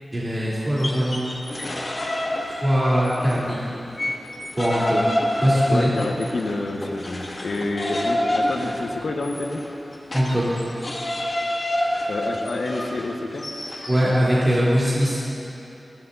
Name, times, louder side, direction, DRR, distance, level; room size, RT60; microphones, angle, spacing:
voice 1, 0.1-1.3 2.6-3.8 4.6-5.0 5.4-5.9 10.1-10.4 13.9-15.2, equal, 25° right, -9 dB, 3.7 m, -21 dB
sound 1, 0.6-3.4 3.7-14.0, left 1 dB, 45° left, 2.3 m, -28 dB
voice 2, 5.7-9.6 12.1-13.5, left 2 dB, 80° left, 1 dB, 1.4 m, -28 dB
23.0 x 17.5 x 2.8 m, 2.9 s
wide cardioid pair, 80°, 0 cm